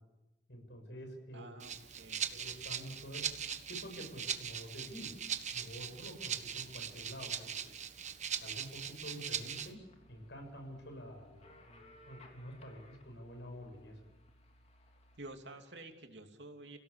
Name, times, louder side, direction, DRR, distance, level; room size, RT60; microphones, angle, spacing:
voice 1, 0.5-1.6 2.3-3.3 3.7-7.8 8.4-9.8 10.1-14.0, equal, 75° left, 4 dB, 7.1 m, -48 dB
voice 2, 1.3-2.2 15.2-16.8, right 2 dB, 75° right, 4 dB, 3.0 m, -50 dB
Rattle (instrument), 1.6-9.7, right 8 dB, 45° right, 1.4 m, -40 dB
sound 1, 9.0-15.2, left 1 dB, 40° left, 3.5 m, -62 dB
30.0 x 17.5 x 8.5 m, 1.0 s
head